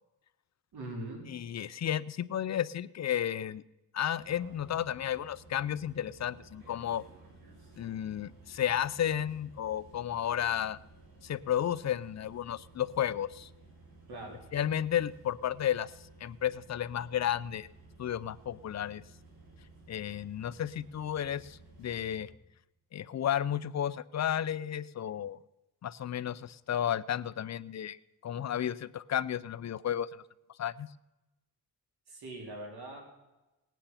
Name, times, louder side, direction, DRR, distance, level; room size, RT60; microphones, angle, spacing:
voice 1, 0.7-1.3 14.1-14.4 32.1-33.1, right 1 dB, 85° right, 1 dB, 4.0 m, -42 dB
voice 2, 1.3-3.6 3.9-7.0 7.8-10.8 11.2-13.5 14.5-15.9 16.2-17.7 18.0-19.0 19.9-22.3 22.9-25.4 25.8-28.0 28.2-30.1 30.6-30.9, left 10 dB, 45° left, 16 dB, 0.5 m, -33 dB
sound 1, 4.2-22.3, right 3 dB, 70° right, 4.9 m, -56 dB
18.5 x 9.2 x 5.7 m, 1.0 s
wide cardioid pair, 125°, 37 cm